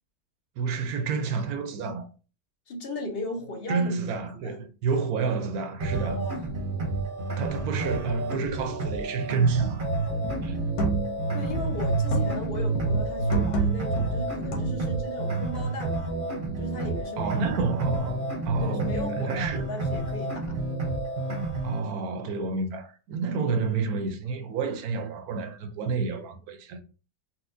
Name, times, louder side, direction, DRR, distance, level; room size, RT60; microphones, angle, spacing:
voice 1, 0.6-2.1 3.7-6.2 7.4-9.9 10.4-10.7 17.2-19.7 21.6-26.8, right 4 dB, 80° right, 1.1 m, -29 dB
voice 2, 2.7-3.9 4.4-4.7 6.0-6.5 11.3-16.1 16.6-17.4 18.6-20.6, left 2 dB, 50° left, 0.8 m, -37 dB
sound 1, 5.8-21.8, right 2 dB, 40° right, 0.8 m, -29 dB
sound 2, 9.6-9.9 10.2-11.2 11.5-12.5 12.8-15.0, right 2 dB, 90° left, 1.3 m, -30 dB
4.2 x 2.2 x 2.6 m
omnidirectional pair, 1.6 m